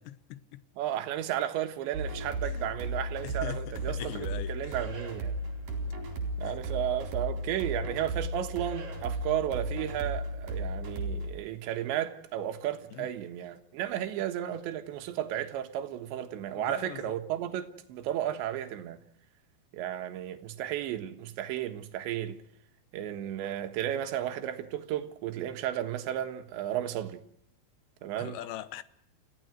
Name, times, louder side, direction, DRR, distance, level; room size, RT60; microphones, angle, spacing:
voice 1, 0.8-5.3 6.4-19.0 19.7-22.4 22.9-27.2 28.0-28.5, right 11 dB, 75° right, 3.5 m, -33 dB
sound 1, 1.9-11.3, right 1 dB, 45° right, 5.3 m, -35 dB
voice 2, 3.2-3.6 3.9-4.7 6.4-6.5 13.0-13.1 16.5-17.1 28.2-28.8, left 13 dB, 75° left, 2.9 m, -41 dB
30.0 x 16.0 x 6.4 m
omnidirectional pair, 5.7 m